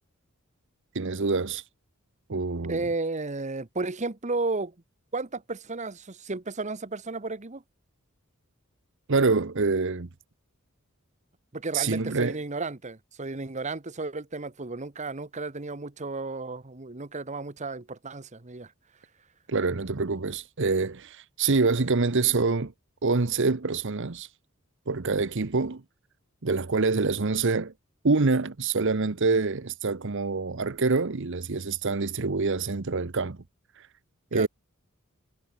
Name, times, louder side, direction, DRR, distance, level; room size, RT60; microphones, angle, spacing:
voice 1, 0.9-1.6 2.3-2.8 9.1-10.1 11.7-12.4 19.5-22.7 23.0-24.3 24.9-25.8 26.4-27.7 28.0-33.4 34.3-34.5, right 4 dB, 60° right, 0.9 m, -26 dB
voice 2, 2.7-4.7 5.1-7.6 11.5-18.7 34.3-34.5, right 3 dB, 35° right, 1.2 m, -33 dB
head